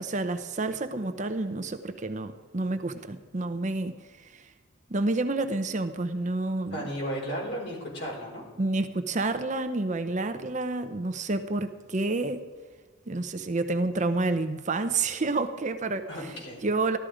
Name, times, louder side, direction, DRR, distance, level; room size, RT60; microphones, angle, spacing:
voice 1, 0.0-4.5 4.9-6.8 8.6-12.4 13.1-16.3 16.6-17.0, right 2 dB, 35° right, 10 dB, 0.6 m, -29 dB
voice 2, 6.7-8.5 16.1-16.6, equal, 55° left, -2 dB, 4.5 m, -34 dB
14.5 x 12.0 x 5.0 m, 1.4 s
head